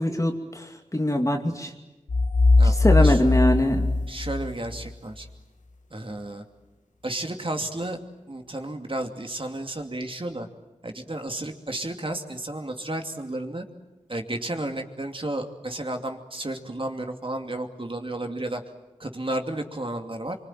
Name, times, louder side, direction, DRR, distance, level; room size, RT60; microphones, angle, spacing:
voice 1, 0.0-1.7 2.6-3.9, left 1 dB, 25° left, 3 dB, 2.6 m, -23 dB
sound 1, 2.1-4.9, left 3 dB, 85° left, 1.4 m, -20 dB
voice 2, 2.6-3.2 4.1-5.3 5.9-6.4 7.0-8.0 8.3-10.5 10.8-13.6 14.1-18.6 19.0-20.4, right 1 dB, 45° right, 5 dB, 2.6 m, -32 dB
24.5 x 24.5 x 9.1 m, 1.1 s
wide cardioid pair, 50°, 12 cm